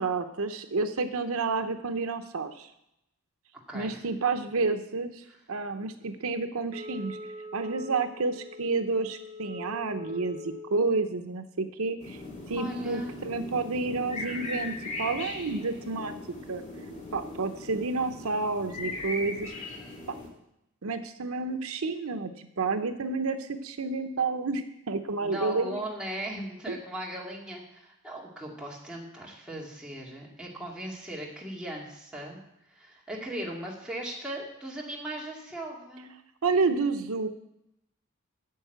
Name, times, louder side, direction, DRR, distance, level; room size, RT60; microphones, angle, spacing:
voice 1, 0.0-2.7 3.7-7.2 7.5-12.2 12.5-16.1 16.5-16.6 17.1-19.5 20.1-20.2 20.8-25.8 26.7-26.8 36.4-37.3, right 3 dB, 90° right, 8 dB, 0.8 m, -30 dB
Wind instrument woodwind instrument, 6.7-10.8, left 2 dB, 50° right, 2.3 m, -43 dB
sound 1, 12.0-20.3, left 2 dB, 35° left, 2.7 m, -39 dB
voice 2, 12.5-13.1 25.2-32.4 32.7-36.1, right 1 dB, 5° right, -4 dB, 2.2 m, -38 dB
9.6 x 6.5 x 7.9 m, 0.82 s
head